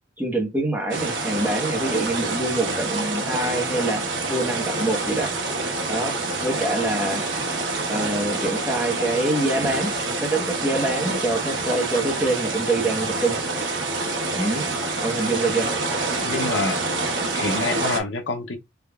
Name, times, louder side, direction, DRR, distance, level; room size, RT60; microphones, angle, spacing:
voice 1, 0.2-4.0 4.3-5.3 5.9-6.2 6.4-7.2 7.9-9.9 10.2-13.4 14.3-14.7 15.0-15.7, right 2 dB, 10° right, 1.0 m, -25 dB
sound 1, 0.9-18.0, right 3 dB, 65° right, 1.0 m, -27 dB
voice 2, 16.3-16.8 17.3-18.6, left 3 dB, 70° left, 0.6 m, -26 dB
3.5 x 3.1 x 2.3 m
head